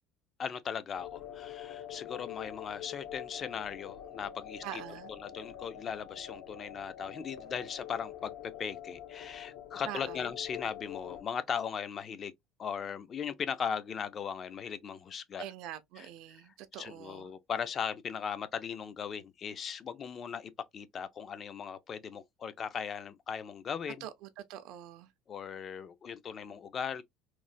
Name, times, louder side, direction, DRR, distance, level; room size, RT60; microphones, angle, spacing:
voice 1, 0.4-4.8 5.2-8.3 8.6-12.3 12.6-15.4 16.0-16.1 16.7-24.1 25.3-27.0, left 7 dB, 30° left, 0.4 m, -38 dB
sound 1, 0.9-11.2, left 10 dB, 70° left, 0.7 m, -45 dB
voice 2, 4.6-5.1 9.9-10.3 15.4-17.3 24.0-25.1, right 12 dB, 60° right, 0.5 m, -44 dB
3.0 x 2.0 x 2.5 m
cardioid pair, 145°, 0 cm